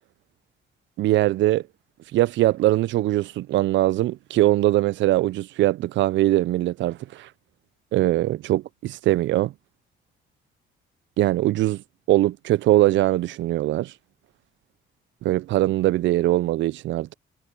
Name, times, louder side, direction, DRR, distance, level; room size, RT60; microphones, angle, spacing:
voice 1, 1.0-1.6 2.1-7.3 7.9-9.5 11.2-11.8 12.1-13.9 15.2-17.1, right 15 dB, 70° right, 0.4 m, -21 dB
cardioid pair, 90°, 20 cm